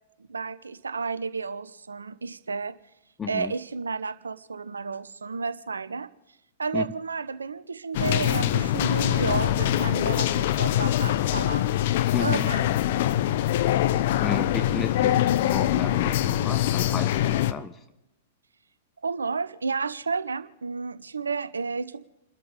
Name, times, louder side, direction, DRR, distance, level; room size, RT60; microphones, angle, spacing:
voice 1, 0.3-2.8 3.3-6.1 6.6-11.7 12.2-12.7 19.0-22.1, right 4 dB, 75° right, 14 dB, 1.0 m, -31 dB
voice 2, 3.2-3.5 6.7-6.8 12.1-12.5 14.2-17.8, left 6 dB, 20° left, 10 dB, 0.8 m, -33 dB
sound 1, 7.9-17.5, left 12 dB, 50° left, 0.9 m, -24 dB
30.0 x 13.0 x 3.4 m, 0.97 s
figure-of-eight pair, 105°, 0 cm